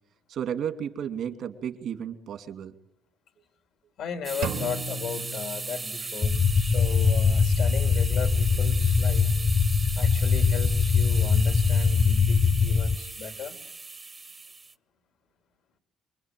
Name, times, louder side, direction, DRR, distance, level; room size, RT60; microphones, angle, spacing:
voice 1, 0.3-2.7, right 8 dB, 75° right, 2.6 m, -33 dB
voice 2, 4.0-9.3 10.0-13.6, left 7 dB, 85° left, 2.9 m, -36 dB
sound 1, 4.2-14.7, right 3 dB, 30° right, 1.0 m, -37 dB
sound 2, 4.4-6.4, right 4 dB, 90° right, 3.3 m, -36 dB
sound 3, 6.2-13.0, left 5 dB, 45° left, 1.2 m, -22 dB
28.0 x 22.0 x 9.2 m
cardioid pair, 90°, 0 cm